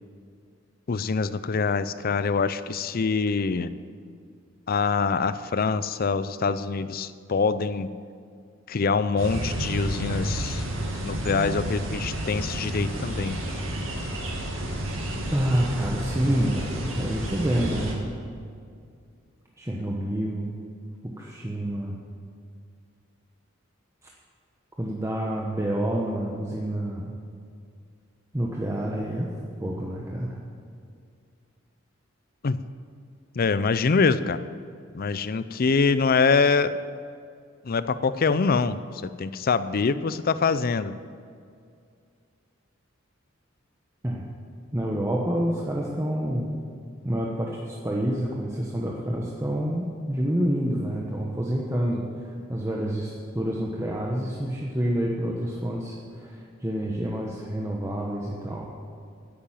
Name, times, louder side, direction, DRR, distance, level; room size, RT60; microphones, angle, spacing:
voice 1, 0.9-3.7 4.7-7.9 8.7-10.6 11.0-13.4 32.4-32.6 33.4-34.4 34.9-36.7 37.7-38.8 39.2-40.9, left 4 dB, 45° left, 14 dB, 0.5 m, -24 dB
sound 1, 9.2-17.9, right 1 dB, 80° right, 2.2 m, -31 dB
voice 2, 15.3-18.1 19.6-20.5 21.0-22.0 24.8-27.1 28.3-29.3 29.6-30.4 44.0-44.3 44.7-46.6 47.0-58.7, right 1 dB, 15° right, -3 dB, 1.1 m, -28 dB
10.5 x 8.7 x 9.1 m, 2.3 s
head